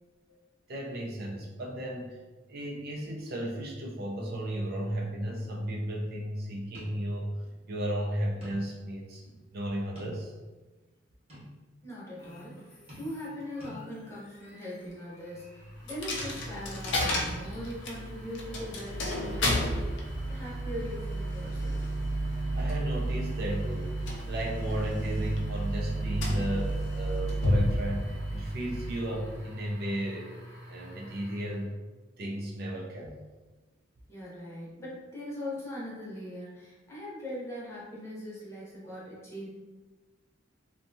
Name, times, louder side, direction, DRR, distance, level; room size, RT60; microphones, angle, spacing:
voice 1, 0.7-2.2 2.5-7.3 7.7-9.2 9.5-10.3 22.5-23.9 24.3-30.4 30.6-31.7 32.2-33.2, right 1 dB, 55° right, -2 dB, 0.4 m, -34 dB
sound 1, 6.7-7.0 7.4-7.5 8.4-8.8 9.2-9.3 10.0-10.5 11.3-11.5 12.9-13.3 13.6-13.8, equal, 35° right, 0.9 m, -47 dB
voice 2, 11.8-21.8 34.1-39.5, left 1 dB, 15° left, -7 dB, 0.7 m, -41 dB
sound 2, 12.2-31.7, equal, 45° left, 0.8 m, -47 dB
Coin (dropping), 15.9-29.6, equal, 65° left, 0.5 m, -32 dB
2.6 x 2.2 x 2.6 m, 1.2 s
head